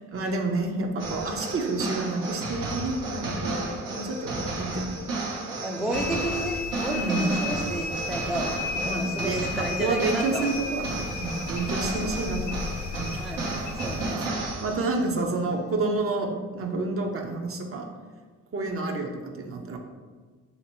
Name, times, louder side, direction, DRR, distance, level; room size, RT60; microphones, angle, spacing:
voice 1, 0.1-5.0 5.3-5.4 5.8-5.9 6.9-7.3 8.7-12.6 13.0-13.2 14.6-17.9 18.5-19.8, right 3 dB, 45° right, 3 dB, 0.7 m, -29 dB
sound 1, 1.0-15.1, right 2 dB, 75° right, 0.8 m, -33 dB
voice 2, 5.6-10.5 11.7-12.4 13.2-14.6, right 1 dB, ahead, 1 dB, 0.4 m, -33 dB
sound 2, 5.9-14.1, left 5 dB, 60° left, 0.5 m, -34 dB
2.9 x 2.8 x 4.4 m, 1.4 s
supercardioid pair, 60°, 33 cm